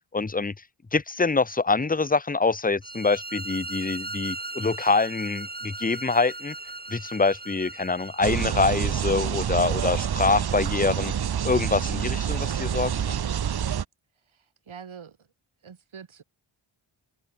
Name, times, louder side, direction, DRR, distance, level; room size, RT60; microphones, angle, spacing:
voice 1, 0.1-0.5 0.9-6.5 6.9-11.1 11.4-13.2, left 4 dB, 15° left, 0.8 m, -25 dB
sound 1, 2.8-8.7, right 2 dB, 20° right, 1.4 m, -38 dB
sound 2, 8.2-13.9, right 8 dB, 50° right, 0.7 m, -27 dB
voice 2, 14.3-15.3 15.6-16.2, right 6 dB, 75° right, 2.3 m, -45 dB
open air
wide cardioid pair, 70°, 49 cm